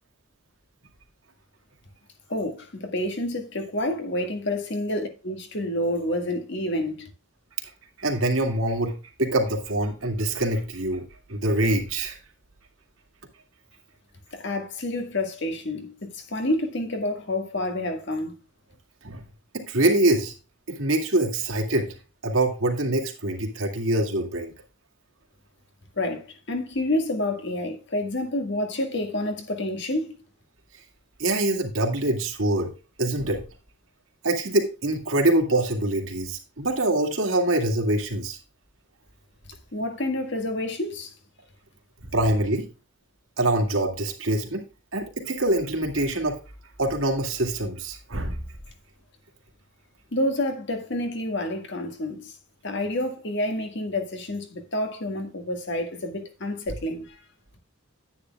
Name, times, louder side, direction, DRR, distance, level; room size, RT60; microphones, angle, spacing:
voice 1, 2.3-7.1 14.3-18.4 26.0-30.2 39.7-41.1 50.1-52.4 52.6-57.2, left 1 dB, 60° left, 1.8 m, -28 dB
voice 2, 8.0-8.9 9.2-11.0 11.3-12.2 19.0-19.2 19.5-20.3 20.7-21.9 22.2-24.5 31.2-32.7 33.0-33.4 34.2-38.4 42.1-42.7 43.4-44.6 44.9-46.4 46.8-48.4, right 1 dB, 75° right, 2.2 m, -24 dB
10.0 x 9.4 x 2.3 m
head